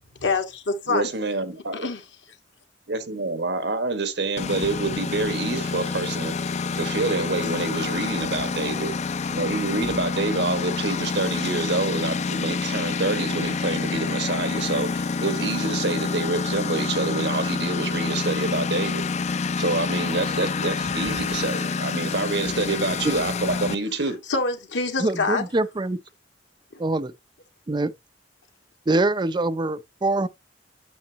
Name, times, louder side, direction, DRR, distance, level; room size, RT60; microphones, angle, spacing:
voice 1, 0.2-1.1 1.7-2.0 7.4-7.7 24.3-25.5, left 3 dB, 90° left, 1.7 m, -26 dB
voice 2, 0.9-1.9 2.9-8.9 9.3-19.1 19.6-24.2, right 3 dB, 70° right, 1.4 m, -27 dB
Engine, 4.4-23.7, left 4 dB, 40° left, 0.5 m, -27 dB
voice 3, 25.0-26.0 26.8-27.1 27.7-27.9 28.9-30.3, right 2 dB, 25° right, 0.5 m, -24 dB
8.5 x 7.0 x 2.9 m
head